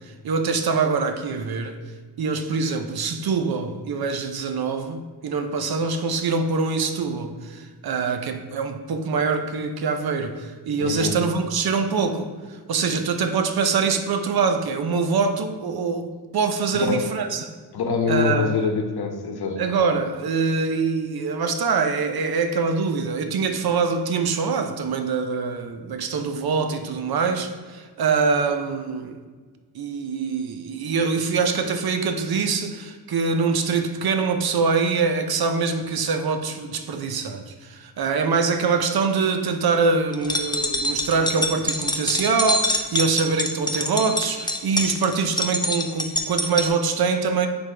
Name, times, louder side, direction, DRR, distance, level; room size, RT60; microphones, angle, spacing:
voice 1, 0.2-1.8 2.2-12.3 12.7-17.5 18.1-18.5 19.6-29.2 29.7-47.5, right 4 dB, 65° right, 0.7 m, -24 dB
voice 2, 10.8-11.2 16.7-17.1 17.7-19.6, left 5 dB, 70° left, 0.9 m, -24 dB
sound 1, 40.1-46.7, left 1 dB, 10° left, 0.4 m, -25 dB
9.8 x 3.5 x 3.3 m
wide cardioid pair, 135°, 40 cm